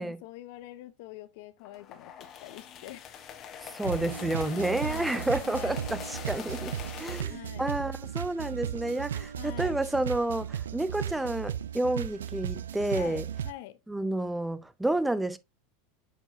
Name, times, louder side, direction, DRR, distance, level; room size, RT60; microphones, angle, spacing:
voice 1, 0.0-3.1 4.8-5.9 7.3-7.8 9.3-9.8 12.9-13.8, left 15 dB, 65° left, 0.7 m, -45 dB
sound 1, 1.6-7.2, left 8 dB, 45° left, 1.1 m, -43 dB
voice 2, 3.6-13.2 13.9-15.4, right 1 dB, 5° right, 0.5 m, -30 dB
sound 2, 3.8-13.5, right 9 dB, 85° right, 0.3 m, -36 dB
7.9 x 4.6 x 2.6 m
hypercardioid pair, 90°, 0 cm